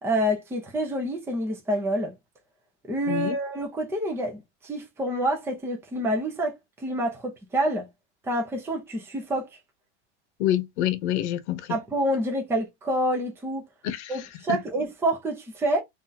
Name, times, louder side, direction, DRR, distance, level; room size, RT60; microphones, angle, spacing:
voice 1, 0.0-2.1 2.9-7.9 8.2-9.5 11.7-13.7 14.1-15.8, right 1 dB, 5° right, 0.7 m, -27 dB
voice 2, 10.4-11.8 13.8-14.6, left 12 dB, 70° left, 0.9 m, -27 dB
2.8 x 2.7 x 3.9 m
supercardioid pair, 145°, 36 cm